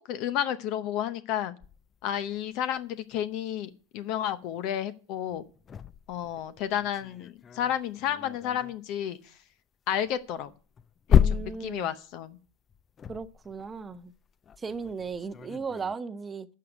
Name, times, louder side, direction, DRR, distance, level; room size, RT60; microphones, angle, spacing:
voice 1, 0.0-1.5 2.0-5.4 6.1-9.2 9.9-10.5 11.1-12.4, left 10 dB, 50° left, 0.7 m, -31 dB
sound 1, 1.6-2.6 5.3-8.9 10.1-16.0, left 8 dB, 25° left, 0.4 m, -31 dB
voice 2, 11.1-11.9 13.1-14.1 14.6-16.5, right 5 dB, 20° right, 0.7 m, -36 dB
11.5 x 6.5 x 5.1 m
hypercardioid pair, 105°, 0 cm